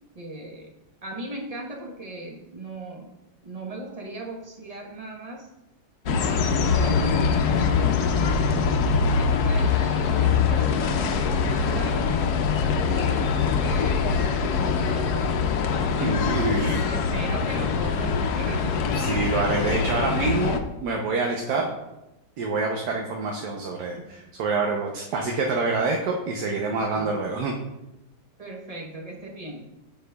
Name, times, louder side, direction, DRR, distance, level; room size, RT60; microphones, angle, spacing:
voice 1, 0.1-0.7 1.0-3.1 3.4-5.5 6.0-8.2 8.5-12.2 12.8-15.5 16.7-18.7 21.6-21.7 22.9-23.0 23.9-24.1 28.4-29.7, right 2 dB, 30° right, 0 dB, 0.8 m, -38 dB
sound 1, 6.1-20.6, left 5 dB, 70° left, 1.1 m, -23 dB
voice 2, 15.9-16.8 18.9-21.7 22.4-24.0 24.4-27.5, right 3 dB, 75° right, 0 dB, 1.3 m, -26 dB
14.5 x 4.9 x 2.3 m, 0.95 s
omnidirectional pair, 1.8 m